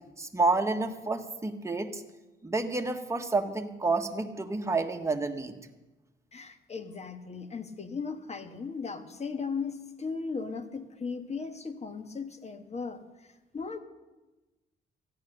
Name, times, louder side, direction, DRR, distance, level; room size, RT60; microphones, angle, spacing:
voice 1, 0.2-2.0 2.4-5.5, right 3 dB, 15° right, 4 dB, 1.3 m, -29 dB
voice 2, 6.3-13.0 13.5-13.8, left 5 dB, 35° left, 9 dB, 1.3 m, -37 dB
14.0 x 9.7 x 6.6 m, 1.1 s
cardioid pair, 90°, 20 cm